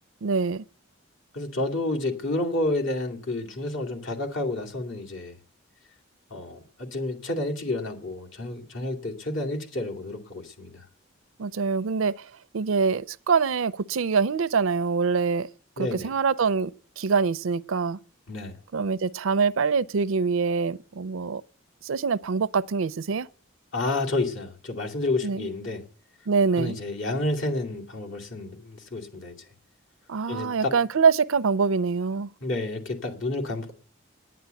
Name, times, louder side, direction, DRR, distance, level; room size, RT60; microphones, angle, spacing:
voice 1, 0.2-0.6 11.4-12.3 12.5-15.5 15.8-18.0 18.7-21.4 21.8-23.3 25.2-25.5 26.3-26.8 30.1-32.3, right 5 dB, 80° right, 0.5 m, -24 dB
voice 2, 1.3-5.4 6.3-10.8 15.8-16.1 18.3-18.6 23.7-25.8 26.5-29.4 30.3-30.7 32.4-33.7, left 2 dB, 65° left, 2.5 m, -30 dB
10.0 x 9.4 x 8.9 m
head